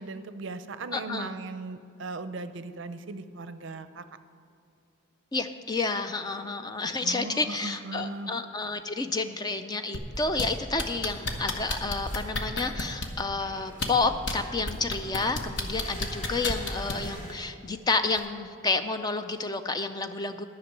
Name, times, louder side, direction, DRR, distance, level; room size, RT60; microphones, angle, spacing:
voice 1, 0.0-4.0 7.0-8.3, right 3 dB, 60° right, 12 dB, 0.5 m, -38 dB
voice 2, 0.9-1.4 5.3-20.5, left 3 dB, 20° left, 8 dB, 0.4 m, -30 dB
sound 1, 9.9-10.5 10.8-13.2 13.7-14.3 14.7-17.1 18.1-18.2, left 2 dB, 55° left, 1.1 m, -31 dB
sound 2, 11.7-17.3, equal, 40° left, 2.8 m, -47 dB
11.0 x 6.0 x 8.8 m, 2.6 s
head